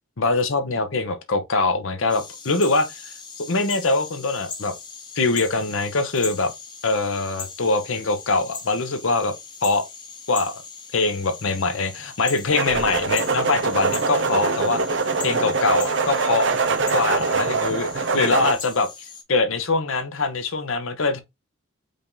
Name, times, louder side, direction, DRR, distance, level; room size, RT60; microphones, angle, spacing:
voice 1, 0.2-4.7 5.2-6.5 6.8-9.3 9.6-9.8 10.3-10.5 10.9-14.8 15.2-16.5 16.9-21.2, left 3 dB, 80° left, 0.9 m, -23 dB
sound 1, 2.1-19.2, left 5 dB, 20° left, 0.8 m, -39 dB
sound 2, 12.5-18.5, right 4 dB, 60° right, 0.7 m, -23 dB
5.1 x 2.6 x 3.7 m
head